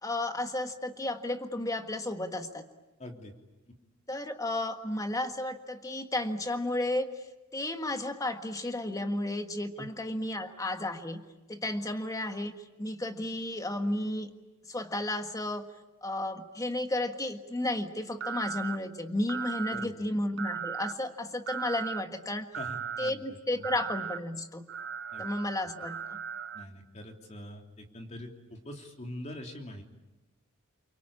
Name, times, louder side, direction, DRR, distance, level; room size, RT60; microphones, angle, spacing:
voice 1, 0.0-2.6 4.1-7.1 7.5-11.2 11.5-14.3 14.7-15.7 16.0-22.5 23.0-24.7 25.2-26.2, left 1 dB, 15° left, 6 dB, 1.6 m, -33 dB
voice 2, 3.0-3.3 9.8-9.9 19.7-19.9 22.5-23.6 25.1-25.2 26.5-29.8, left 1 dB, 30° left, 3 dB, 3.3 m, -44 dB
sound 1, 18.2-18.8 19.3-19.8 20.4-20.9 21.5-22.0 22.5-23.1 23.6-24.2 24.7-26.6, right 7 dB, 55° right, 0.9 m, -37 dB
29.5 x 23.5 x 8.6 m, 1.1 s
head